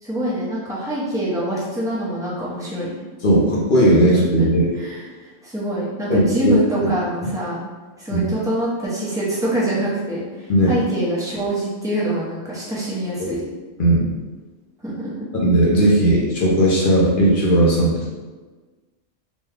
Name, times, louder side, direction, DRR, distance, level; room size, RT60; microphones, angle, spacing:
voice 1, 0.0-3.0 4.4-4.5 4.7-7.6 8.0-13.4 14.8-15.3, right 1 dB, 5° right, -8 dB, 0.7 m, -25 dB
voice 2, 3.2-4.7 6.1-6.9 7.2-7.3 8.1-8.3 10.5-10.7 13.2-13.4 13.8-14.1 15.4-18.1, right 1 dB, 45° left, -4 dB, 0.8 m, -17 dB
3.1 x 2.2 x 3.6 m, 1.3 s
omnidirectional pair, 1.4 m